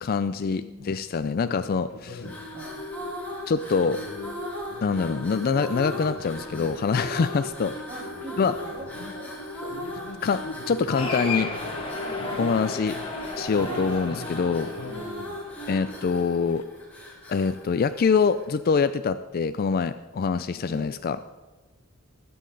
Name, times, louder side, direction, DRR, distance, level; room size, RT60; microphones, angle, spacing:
voice 1, 0.0-2.2 3.5-4.0 4.8-7.7 8.4-8.5 10.2-11.5 12.4-13.0 13.4-14.7 15.7-16.6 17.3-21.2, left 5 dB, 45° left, 11 dB, 0.4 m, -25 dB
voice 2, 0.5-0.9 2.0-2.8 7.9-9.4 12.2-12.5 13.7-13.9 14.8-15.1 20.6-20.9, right 1 dB, 35° right, -3 dB, 1.8 m, -42 dB
sound 1, 1.4-16.6, left 3 dB, 80° left, 0.9 m, -44 dB
sound 2, 2.2-18.6, left 1 dB, 10° left, 3.1 m, -37 dB
Cheering, 11.0-15.7, left 3 dB, 25° left, 2.1 m, -34 dB
20.0 x 8.6 x 3.9 m, 1.2 s
head